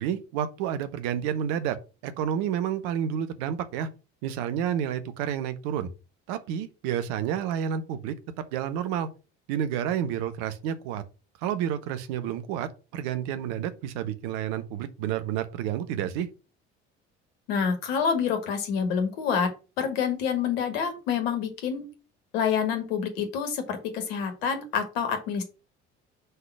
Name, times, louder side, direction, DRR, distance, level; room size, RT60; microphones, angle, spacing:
voice 1, 0.0-1.8 2.0-3.9 4.2-5.9 6.3-8.1 8.5-9.1 9.5-11.0 11.4-16.3, right 9 dB, 60° right, 0.9 m, -30 dB
voice 2, 17.5-19.5 19.8-21.9 22.3-25.4, left 7 dB, 65° left, 1.6 m, -27 dB
5.4 x 3.9 x 6.0 m
figure-of-eight pair, 55°, 33 cm